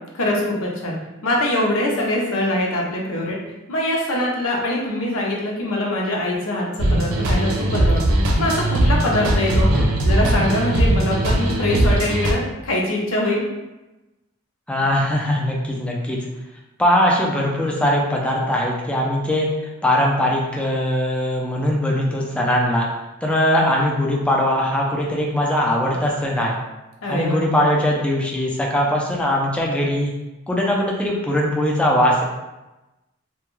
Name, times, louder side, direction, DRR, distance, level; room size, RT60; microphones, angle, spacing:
voice 1, 0.1-3.4 3.7-8.1 8.4-9.7 10.0-13.4 27.0-27.5, left 1 dB, 70° left, -2 dB, 0.6 m, -23 dB
sound 1, 6.8-12.3, right 1 dB, 80° right, 0.4 m, -19 dB
voice 2, 14.7-16.2 16.8-19.5 19.8-22.9 23.2-26.6 27.1-30.1 30.5-32.2, equal, 5° left, -3 dB, 0.4 m, -20 dB
2.2 x 2.2 x 3.0 m, 1.0 s
head